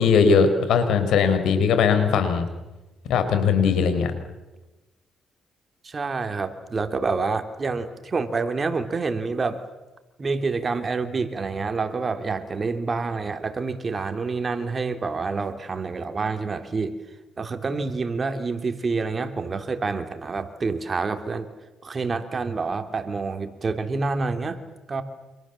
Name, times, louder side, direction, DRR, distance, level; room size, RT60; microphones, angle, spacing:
voice 1, 0.0-2.5 3.1-4.1, left 6 dB, 80° left, 8 dB, 5.1 m, -19 dB
voice 2, 5.8-9.6 10.2-17.0 17.4-21.5 21.8-24.6 24.9-25.0, right 4 dB, 35° right, 8 dB, 2.8 m, -27 dB
29.5 x 27.0 x 7.5 m, 1.1 s
cardioid pair, 90°, 0 cm